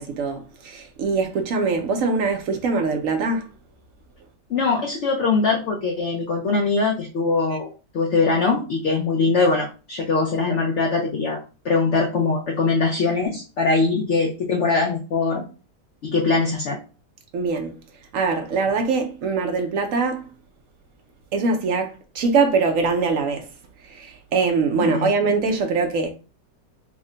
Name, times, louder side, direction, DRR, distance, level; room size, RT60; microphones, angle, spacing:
voice 1, 0.0-3.5 17.3-17.7 18.1-20.2 21.3-23.4 23.8-26.1, right 4 dB, 70° right, 0.8 m, -23 dB
voice 2, 4.5-7.7 7.9-11.4 11.6-15.4 16.0-16.8 24.8-25.1, left 4 dB, 65° left, 0.7 m, -22 dB
3.5 x 2.1 x 3.7 m
omnidirectional pair, 1.9 m